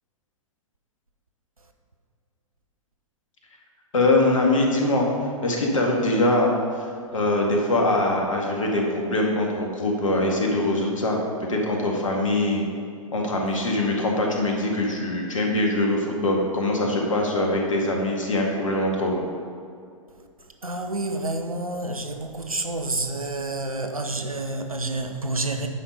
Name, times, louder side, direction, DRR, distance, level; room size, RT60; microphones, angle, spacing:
voice 1, 3.9-5.1 5.4-6.5 7.1-12.7 13.1-19.2, left 1 dB, 65° left, 0 dB, 1.8 m, -23 dB
voice 2, 20.6-25.7, right 2 dB, 85° right, 5 dB, 0.9 m, -29 dB
9.6 x 5.9 x 5.3 m, 2.3 s
figure-of-eight pair, 105°, 18 cm